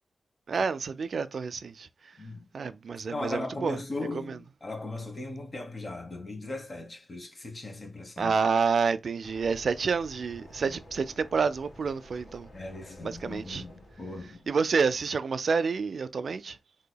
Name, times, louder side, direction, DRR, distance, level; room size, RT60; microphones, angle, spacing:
voice 1, 0.5-2.1 2.5-3.8 4.1-4.4 8.2-12.5 13.0-13.6 14.5-16.6, right 5 dB, 75° right, 0.3 m, -29 dB
voice 2, 2.2-2.5 3.1-8.3 10.6-10.8 12.5-14.5, left 2 dB, 45° left, 1.1 m, -38 dB
sound 1, 9.2-14.7, left 1 dB, 75° left, 1.7 m, -51 dB
3.9 x 2.7 x 2.2 m
wide cardioid pair, 80°, 0 cm